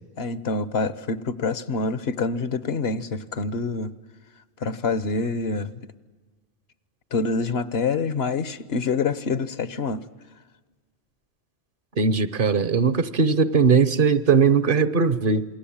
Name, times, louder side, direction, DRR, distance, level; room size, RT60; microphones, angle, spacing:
voice 1, 0.2-3.9 4.6-5.8 7.1-10.0, left 4 dB, 70° left, 1.2 m, -26 dB
voice 2, 12.0-15.5, right 5 dB, 55° right, 1.1 m, -19 dB
27.5 x 21.5 x 8.8 m
omnidirectional pair, 1.1 m